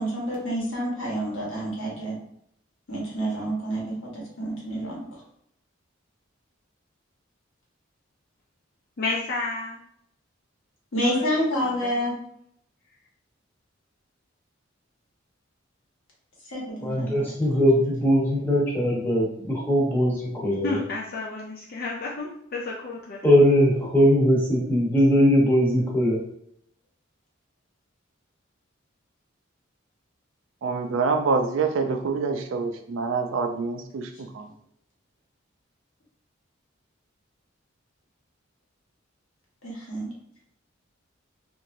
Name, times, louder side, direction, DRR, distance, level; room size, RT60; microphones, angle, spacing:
voice 1, 0.0-2.2 2.9-5.0 10.9-12.2 16.5-17.1 39.6-40.1, equal, 70° left, -4 dB, 1.2 m, -28 dB
voice 2, 9.0-9.8 11.0-12.1 20.6-23.2, left 3 dB, 50° left, -4 dB, 0.4 m, -32 dB
voice 3, 16.8-20.8 23.2-26.2, equal, 10° left, -5 dB, 0.9 m, -20 dB
voice 4, 30.6-34.5, right 4 dB, 75° right, 5 dB, 0.4 m, -26 dB
3.0 x 2.5 x 2.5 m, 0.72 s
head